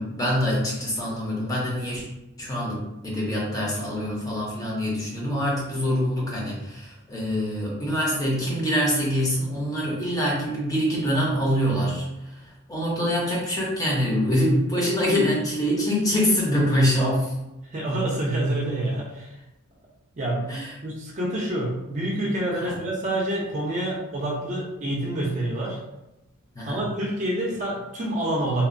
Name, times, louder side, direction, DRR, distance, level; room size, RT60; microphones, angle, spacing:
voice 1, 0.0-2.0 2.4-17.3 20.5-20.7 22.6-22.7 26.6-26.8, equal, 15° left, -4 dB, 0.6 m, -25 dB
voice 2, 17.7-19.3 20.2-20.5 20.8-25.8 26.6-28.7, right 1 dB, 35° right, -3 dB, 0.5 m, -27 dB
2.8 x 2.1 x 2.5 m, 0.94 s
head